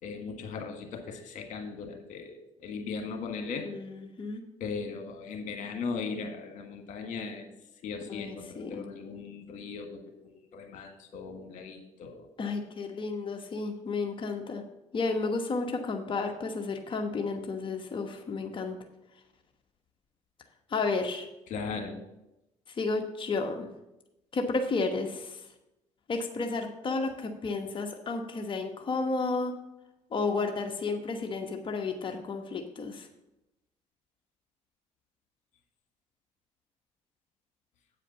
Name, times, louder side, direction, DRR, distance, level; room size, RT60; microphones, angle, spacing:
voice 1, 0.0-3.7 4.6-7.5 7.8-12.3 21.5-22.0, left 5 dB, 70° left, 5 dB, 1.6 m, -38 dB
voice 2, 3.6-4.4 8.1-8.8 12.4-14.6 14.9-18.8 20.7-21.3 22.7-23.7 24.3-25.4 26.1-29.5 30.1-33.1, left 3 dB, 40° left, 4 dB, 1.1 m, -32 dB
8.4 x 5.0 x 6.8 m, 0.92 s
supercardioid pair, 70°, 13 cm